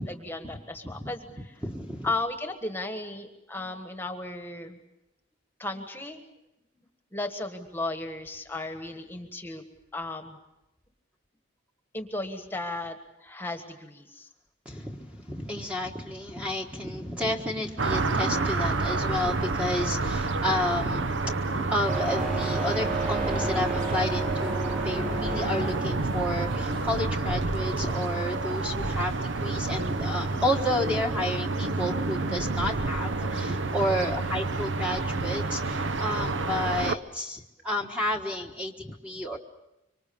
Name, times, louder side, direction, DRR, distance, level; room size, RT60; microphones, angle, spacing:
voice 1, 0.0-1.3 2.0-4.8 5.6-6.2 6.8-6.9 7.1-9.6 9.9-10.4 11.9-12.9 13.2-14.3 33.8-34.1, left 2 dB, 10° left, 6 dB, 1.5 m, -35 dB
voice 2, 0.8-2.1 14.6-39.4, left 1 dB, 5° right, 1 dB, 1.4 m, -31 dB
sound 1, 17.8-37.0, right 3 dB, 65° right, 0.8 m, -29 dB
sound 2, 21.9-27.0, right 3 dB, 45° right, 4.8 m, -32 dB
25.5 x 25.0 x 6.9 m, 0.91 s
head